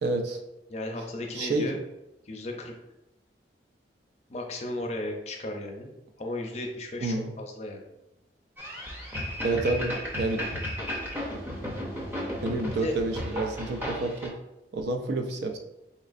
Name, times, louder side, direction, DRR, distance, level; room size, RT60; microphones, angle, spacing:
voice 1, 0.0-0.4 1.3-1.7 7.0-7.3 9.4-10.5 12.4-14.3 14.7-15.6, right 2 dB, 65° right, 4 dB, 0.4 m, -29 dB
voice 2, 0.7-1.8 2.3-2.7 4.3-5.9 6.2-7.8 12.8-12.9, left 1 dB, 35° left, 2 dB, 0.5 m, -35 dB
sound 1, 8.6-14.3, equal, 10° right, 0.6 m, -34 dB
4.1 x 3.1 x 2.5 m, 0.92 s
head